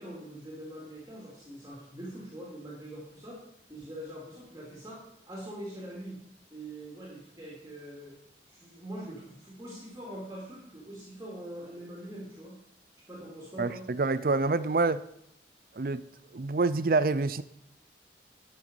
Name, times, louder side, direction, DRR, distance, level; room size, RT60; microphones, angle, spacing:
voice 1, 0.0-3.4 3.7-6.2 6.5-8.2 8.5-12.6 13.1-13.8, right 1 dB, 15° right, 2.6 m, -43 dB
voice 2, 13.6-15.0 15.8-16.0 16.3-17.4, right 3 dB, 50° right, 0.5 m, -27 dB
10.5 x 6.3 x 6.9 m
head